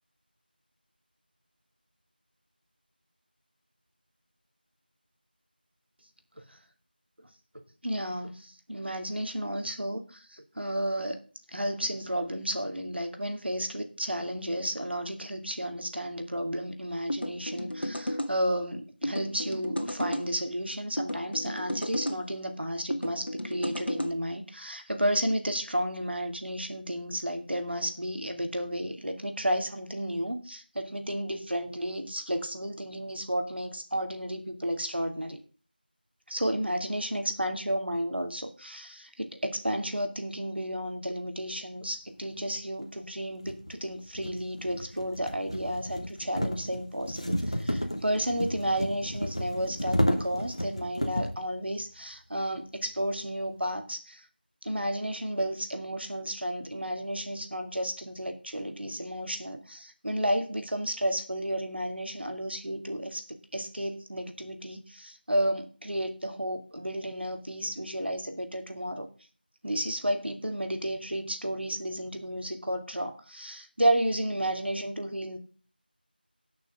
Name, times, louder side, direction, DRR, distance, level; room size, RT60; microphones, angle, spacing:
voice 1, 7.8-11.2 11.5-35.4 36.3-54.3 54.6-69.1 69.6-75.4, equal, 85° right, 6 dB, 2.4 m, -32 dB
sound 1, 17.1-18.3 19.0-20.3 21.0-22.2 22.9-24.1, equal, 90° left, 1.9 m, -33 dB
sound 2, 42.6-42.7 43.4-51.4, equal, 35° left, 1.3 m, -32 dB
18.5 x 6.3 x 3.6 m, 0.38 s
figure-of-eight pair, 180°, 6 cm